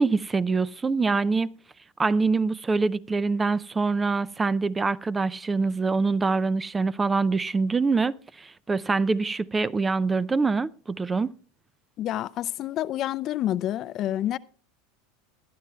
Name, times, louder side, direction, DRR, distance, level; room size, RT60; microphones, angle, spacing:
voice 1, 0.0-1.6 2.0-11.4, right 4 dB, 15° right, 0.4 m, -25 dB
voice 2, 12.0-14.4, left 12 dB, 45° left, 0.5 m, -28 dB
21.0 x 11.0 x 2.3 m
hypercardioid pair, 100°, 0 cm